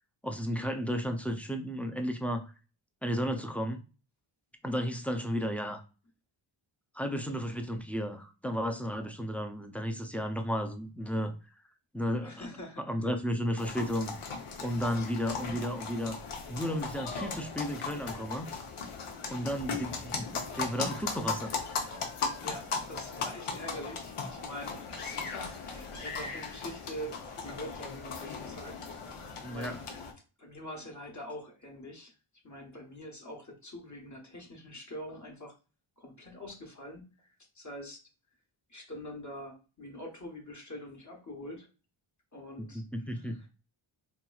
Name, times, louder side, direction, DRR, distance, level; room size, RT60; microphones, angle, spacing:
voice 1, 0.2-2.5 3.0-3.8 4.6-5.8 6.9-11.3 11.9-12.5 12.8-14.1 14.6-16.2 16.5-18.5 19.3-21.5 29.4-29.8 42.6-43.4, equal, 5° left, 5 dB, 0.4 m, -33 dB
voice 2, 12.2-13.1 22.4-28.7 29.0-29.2 29.5-29.8 30.4-32.1 32.4-35.6 36.0-38.0 38.7-41.7 42.3-43.5, equal, 35° left, 1 dB, 1.0 m, -44 dB
sound 1, 13.6-30.1, left 4 dB, 90° left, 0.9 m, -38 dB
3.9 x 3.0 x 2.3 m, 0.33 s
wide cardioid pair, 110°, 50 cm